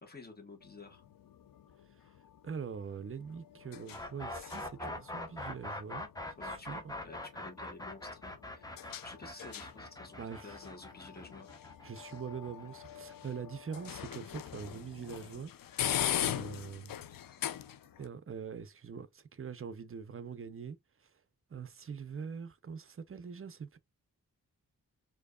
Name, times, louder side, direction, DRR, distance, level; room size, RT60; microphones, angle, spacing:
voice 1, 0.0-1.0 4.8-4.9 6.4-8.7 9.0-11.5, left 3 dB, 25° left, 1.2 m, -51 dB
sound 1, 0.6-18.1, left 10 dB, 70° left, 0.5 m, -42 dB
voice 2, 2.4-6.1 6.4-6.9 10.2-10.6 11.8-15.5 16.1-16.9 18.0-20.8 21.5-23.8, right 6 dB, 40° right, 0.5 m, -43 dB
sound 2, 3.9-13.7, left 1 dB, 10° left, 0.8 m, -43 dB
4.5 x 2.7 x 2.3 m
wide cardioid pair, 100°, 35 cm